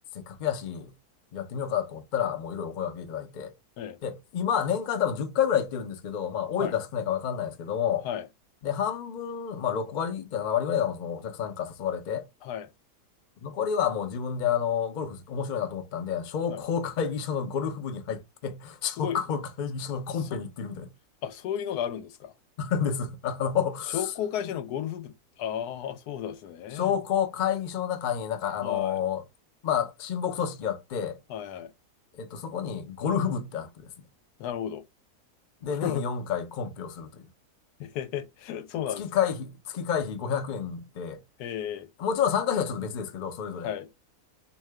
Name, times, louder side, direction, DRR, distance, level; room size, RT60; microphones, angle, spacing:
voice 1, 0.1-0.9 1.3-3.5 4.0-8.0 8.6-12.3 13.4-20.9 22.6-24.1 26.7-29.2 29.6-31.2 32.1-33.9 35.6-37.3 39.0-41.2 42.0-43.7, left 8 dB, 55° left, 0.5 m, -29 dB
voice 2, 21.2-22.3 23.9-26.9 28.6-29.0 31.3-31.7 34.4-34.8 35.8-36.0 37.8-39.1 41.4-41.9 43.6-43.9, left 9 dB, 90° left, 1.1 m, -33 dB
3.6 x 2.8 x 3.3 m
omnidirectional pair, 1.6 m